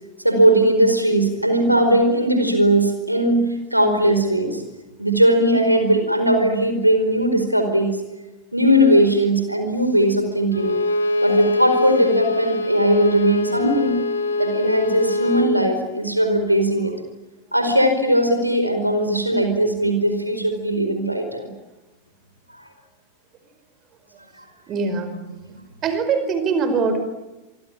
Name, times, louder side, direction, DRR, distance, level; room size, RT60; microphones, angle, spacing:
voice 1, 0.2-4.6 5.0-8.0 8.5-10.8 11.2-14.0 14.4-16.9 17.5-21.5, right 1 dB, 90° right, 7 dB, 4.7 m, -19 dB
Bowed string instrument, 10.5-15.6, left 2 dB, 70° left, 2.4 m, -23 dB
voice 2, 24.7-25.2 25.5-25.6 25.8-27.0, right 4 dB, 30° right, 9 dB, 5.0 m, -22 dB
27.0 x 24.0 x 8.9 m, 1.1 s
figure-of-eight pair, 90°, 0 cm